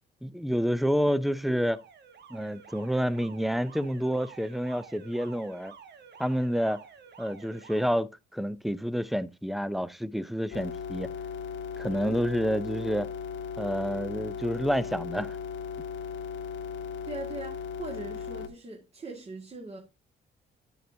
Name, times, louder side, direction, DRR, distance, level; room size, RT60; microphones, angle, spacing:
voice 1, 0.2-1.8 2.3-5.7 6.2-6.8 7.2-11.1 11.8-13.1 13.6-15.4, equal, ahead, 0.5 m, -29 dB
Alarm, 1.4-7.9, right 7 dB, 60° right, 1.4 m, -51 dB
sound 1, 10.5-18.5, left 6 dB, 75° left, 1.1 m, -37 dB
voice 2, 17.1-19.8, right 2 dB, 30° right, 1.9 m, -41 dB
8.5 x 8.2 x 2.7 m
cardioid pair, 90°, 20 cm